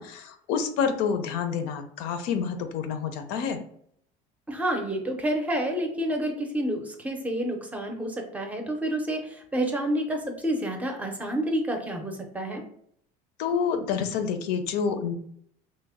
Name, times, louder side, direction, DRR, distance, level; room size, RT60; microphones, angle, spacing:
voice 1, 0.0-3.6 13.4-15.1, left 6 dB, 85° left, 7 dB, 0.5 m, -28 dB
voice 2, 4.5-12.6, right 1 dB, 10° right, 3 dB, 0.5 m, -29 dB
3.0 x 2.1 x 3.5 m, 0.65 s
cardioid pair, 145°, 16 cm